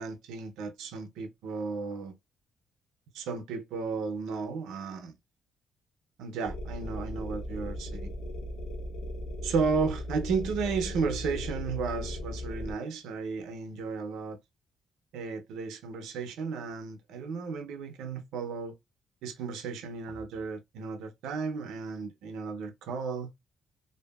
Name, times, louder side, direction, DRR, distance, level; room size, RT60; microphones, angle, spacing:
voice 1, 0.0-2.1 3.1-5.1 6.2-8.1 9.4-14.4 15.1-18.7 19.2-23.3, right 5 dB, 90° right, 0.5 m, -34 dB
sound 1, 6.4-12.7, left 1 dB, 90° left, 0.5 m, -37 dB
2.6 x 2.5 x 2.3 m
cardioid pair, 90°, 0 cm